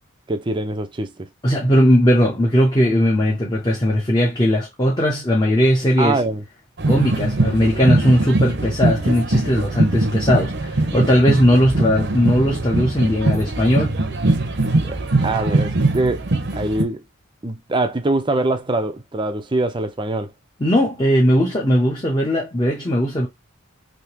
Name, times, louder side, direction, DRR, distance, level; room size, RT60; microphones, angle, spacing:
voice 1, 0.3-1.3 6.0-6.4 14.8-15.0 15.2-16.3 16.5-17.0 17.4-20.3, right 2 dB, 25° right, 0.5 m, -23 dB
voice 2, 1.4-6.2 6.9-13.9 20.6-23.3, equal, 20° left, 0.8 m, -18 dB
sound 1, 6.8-16.8, right 2 dB, 55° right, 0.7 m, -21 dB
3.5 x 2.8 x 2.8 m
head